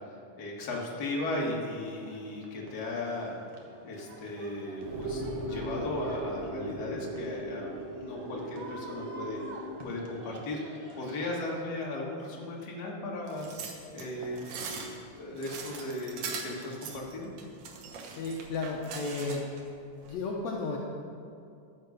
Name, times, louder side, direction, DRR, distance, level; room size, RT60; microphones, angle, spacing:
voice 1, 0.0-3.4 3.8-7.7 7.9-10.6 10.9-13.5 13.9-14.4 14.7-14.9 15.2-17.3, left 2 dB, 40° left, -3 dB, 1.9 m, -36 dB
sound 1, 1.7-11.6, right 2 dB, 55° right, 2.0 m, -49 dB
sound 2, 4.8-9.8, right 1 dB, 40° right, 3.5 m, -38 dB
sound 3, 13.3-19.6 20.0-20.2, right 5 dB, 85° right, 2.8 m, -41 dB
voice 2, 18.1-19.5 19.9-20.8, left 3 dB, 70° left, -1 dB, 2.0 m, -33 dB
14.0 x 6.8 x 6.6 m, 2.5 s
omnidirectional pair, 3.6 m